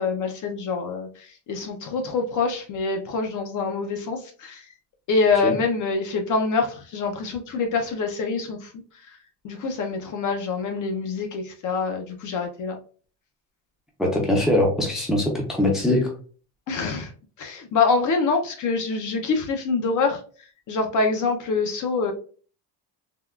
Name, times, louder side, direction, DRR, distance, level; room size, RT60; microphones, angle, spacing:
voice 1, 0.0-4.7 5.1-8.7 9.4-12.7 16.7-17.1 17.4-20.2 20.7-22.1, left 4 dB, 45° left, 3 dB, 0.5 m, -25 dB
voice 2, 14.0-16.2, left 1 dB, ahead, -1 dB, 0.5 m, -22 dB
3.5 x 2.2 x 2.2 m, 0.41 s
cardioid pair, 155°, 44 cm